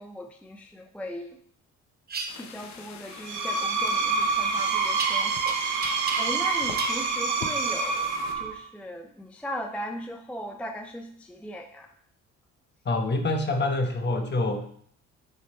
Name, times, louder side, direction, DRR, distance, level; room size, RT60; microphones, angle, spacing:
voice 1, 0.0-1.4 2.4-11.9, equal, 5° left, 3 dB, 0.5 m, -38 dB
sound 1, 2.1-2.3 5.0-5.5 5.8-6.5 6.8-7.0, right 3 dB, 30° right, 0.9 m, -33 dB
sound 2, 2.3-8.3, left 7 dB, 65° left, 0.9 m, -44 dB
Screech, 3.1-8.6, right 4 dB, 75° right, 0.9 m, -27 dB
voice 2, 12.8-14.7, left 2 dB, 35° left, 4 dB, 1.1 m, -26 dB
7.9 x 3.2 x 4.2 m, 0.62 s
cardioid pair, 90°, 30 cm